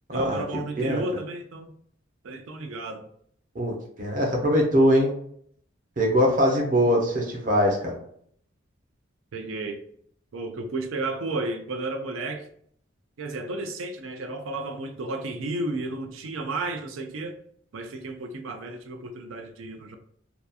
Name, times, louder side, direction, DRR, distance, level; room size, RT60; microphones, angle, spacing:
voice 1, 0.1-1.7 2.2-3.0 9.3-9.8 10.3-12.4 13.2-17.3 17.7-20.0, right 2 dB, 90° right, 6 dB, 0.5 m, -32 dB
voice 2, 3.5-5.1 6.0-8.0, equal, 40° right, 0 dB, 0.7 m, -22 dB
2.8 x 2.3 x 2.3 m, 0.64 s
head